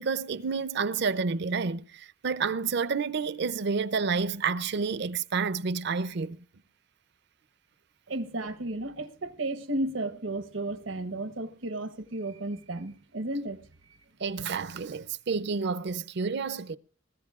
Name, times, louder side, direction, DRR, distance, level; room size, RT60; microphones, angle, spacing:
voice 1, 0.0-6.4 14.2-16.8, right 5 dB, 60° right, 0.5 m, -29 dB
voice 2, 8.1-14.0, right 2 dB, 90° right, 1.0 m, -34 dB
21.5 x 15.5 x 2.4 m
head